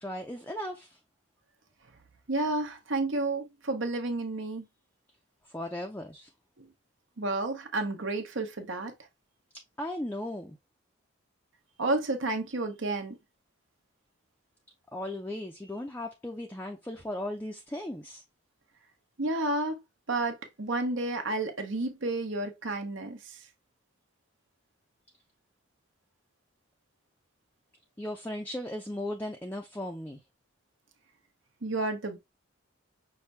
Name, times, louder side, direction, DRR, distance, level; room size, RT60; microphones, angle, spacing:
voice 1, 0.0-1.0 5.5-6.3 9.8-10.6 14.9-18.2 28.0-30.2, left 1 dB, 10° left, 0.4 m, -37 dB
voice 2, 2.3-4.6 6.6-6.7 7.2-8.9 11.8-13.2 19.2-19.8 20.1-23.4 31.6-32.2, right 2 dB, 65° right, 0.9 m, -31 dB
5.7 x 2.7 x 3.2 m
head